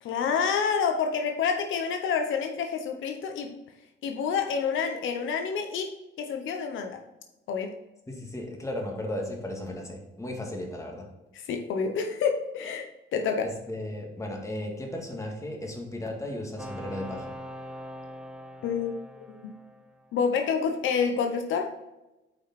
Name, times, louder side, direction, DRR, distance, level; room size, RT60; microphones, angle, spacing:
voice 1, 0.0-3.6 4.0-7.0 7.5-7.8 11.5-12.9 13.1-13.5 18.6-18.9 19.3-19.5 20.1-21.7, left 6 dB, 80° left, 5 dB, 0.9 m, -28 dB
voice 2, 8.1-11.1 13.4-17.3, left 1 dB, 15° left, 1 dB, 2.1 m, -35 dB
sound 1, 16.6-20.3, equal, 5° right, 0.9 m, -42 dB
8.5 x 5.3 x 4.2 m, 0.99 s
cardioid pair, 90°, 20 cm